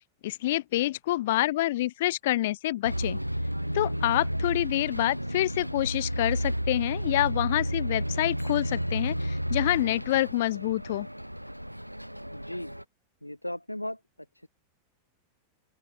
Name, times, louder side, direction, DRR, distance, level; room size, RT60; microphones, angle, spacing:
voice 1, 0.2-3.2 3.7-11.1, left 16 dB, 55° left, 0.3 m, -27 dB
Bus, 2.8-12.8, equal, 90° right, 0.5 m, -32 dB
voice 2, 12.3-12.7 13.2-14.0 14.3-14.5, left 1 dB, 85° left, 1.6 m, -36 dB
open air
figure-of-eight pair, 90°, 0 cm